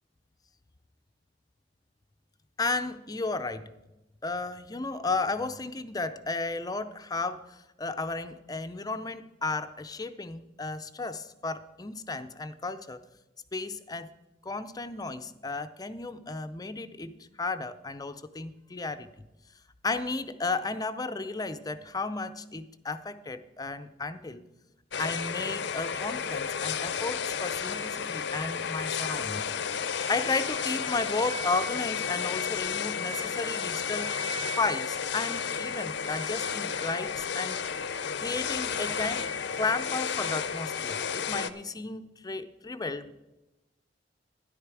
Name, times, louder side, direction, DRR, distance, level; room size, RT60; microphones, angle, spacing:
voice 1, 2.6-3.7 4.2-13.0 13.5-14.1 14.4-19.3 19.8-24.5 25.0-29.5 30.1-34.1 34.6-37.6 38.2-39.3 39.5-43.1, left 3 dB, 20° left, 11 dB, 0.5 m, -33 dB
sound 1, 24.9-41.5, left 6 dB, 70° left, 0.6 m, -32 dB
12.5 x 10.5 x 4.7 m, 0.99 s
head